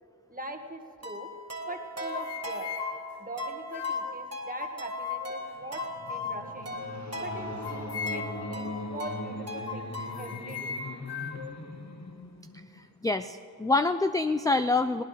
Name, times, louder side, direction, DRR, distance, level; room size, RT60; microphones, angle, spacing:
voice 1, 0.3-1.3 1.6-2.7 3.2-5.8 6.1-6.8 7.2-9.9 10.2-10.8, right 1 dB, 20° right, 5 dB, 1.5 m, -42 dB
sound 1, 1.0-10.4, right 1 dB, 40° right, 1.9 m, -41 dB
sound 2, 1.7-4.2 4.6-5.5 5.8-7.1 7.6-8.5 9.0-9.2 9.7-11.5, left 6 dB, 80° left, 1.0 m, -37 dB
sound 3, 5.6-13.0, left 2 dB, 45° left, 1.2 m, -40 dB
voice 2, 12.5-15.0, left 3 dB, 10° left, 10 dB, 0.3 m, -27 dB
21.0 x 17.5 x 3.2 m, 2.6 s
cardioid pair, 50°, 40 cm